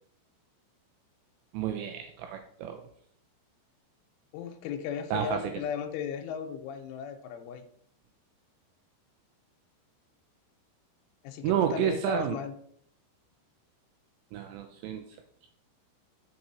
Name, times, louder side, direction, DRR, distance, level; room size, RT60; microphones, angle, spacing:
voice 1, 1.5-2.8 5.1-5.5 11.4-12.4 14.3-15.0, right 9 dB, 90° right, 5 dB, 2.5 m, -30 dB
voice 2, 4.3-7.7 11.2-12.5, left 8 dB, 80° left, 6 dB, 3.2 m, -36 dB
7.5 x 6.0 x 4.2 m, 0.64 s
omnidirectional pair, 5.8 m